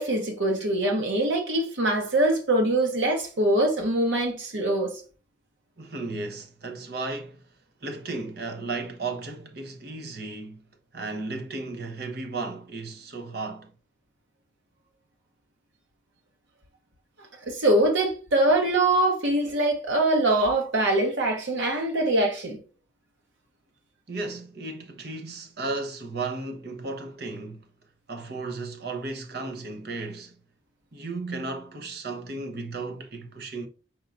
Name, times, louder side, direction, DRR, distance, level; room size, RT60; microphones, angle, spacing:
voice 1, 0.0-5.0 17.5-22.6, right 1 dB, 90° right, 1.0 m, -23 dB
voice 2, 5.8-7.4 7.8-10.6 10.9-13.7 24.1-27.7 28.1-30.3 30.9-33.7, right 3 dB, 60° right, 0.9 m, -34 dB
4.5 x 4.5 x 2.5 m
head